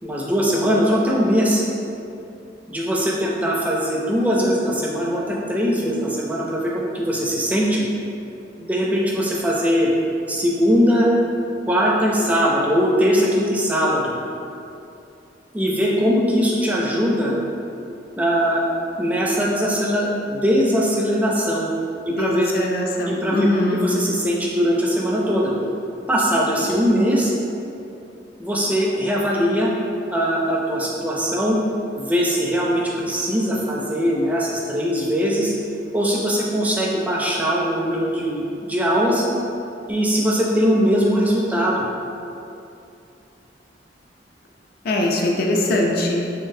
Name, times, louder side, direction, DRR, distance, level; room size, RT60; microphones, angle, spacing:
voice 1, 0.0-1.6 2.7-7.8 8.6-9.9 10.3-11.1 11.6-14.1 15.5-17.4 18.2-18.7 19.0-21.7 22.1-22.5 23.1-25.5 26.1-27.3 28.4-29.7 30.1-31.6 31.9-35.5 35.9-39.2 39.9-41.8, equal, 10° right, -4 dB, 0.4 m, -21 dB
voice 2, 22.2-23.9 44.8-46.2, left 1 dB, 55° left, 0 dB, 0.4 m, -21 dB
3.7 x 3.3 x 2.6 m, 2.7 s
head